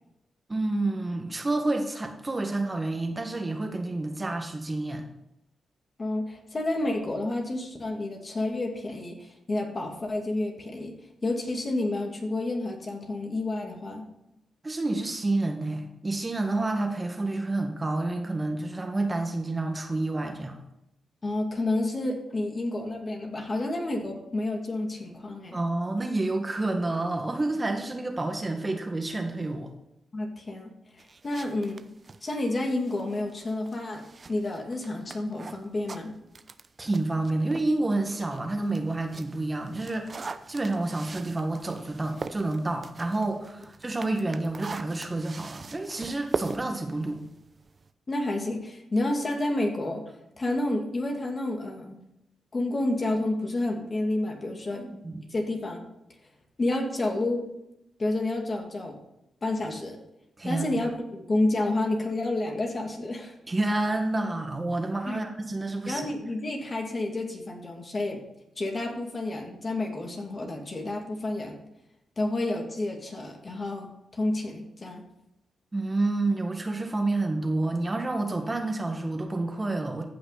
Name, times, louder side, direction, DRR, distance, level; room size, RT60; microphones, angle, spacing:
voice 1, 0.5-5.0 14.6-20.6 25.5-29.7 36.8-47.2 54.7-55.2 60.4-60.9 63.5-66.1 75.7-80.1, right 2 dB, 30° right, 4 dB, 1.8 m, -29 dB
voice 2, 6.0-10.9 11.2-14.0 21.2-25.6 30.1-30.7 31.2-31.8 32.2-34.0 34.3-36.1 48.1-50.0 50.4-52.0 52.5-54.8 55.3-55.8 56.6-57.4 58.0-59.0 59.4-60.0 60.4-63.4 65.1-65.2 65.9-68.2 68.6-71.6 72.2-75.0, left 2 dB, 40° left, 2 dB, 2.5 m, -30 dB
sound 1, 31.0-37.8 38.2-47.9, right 4 dB, 45° right, 0.7 m, -41 dB
14.5 x 6.0 x 4.2 m, 0.85 s
supercardioid pair, 45°, 0 cm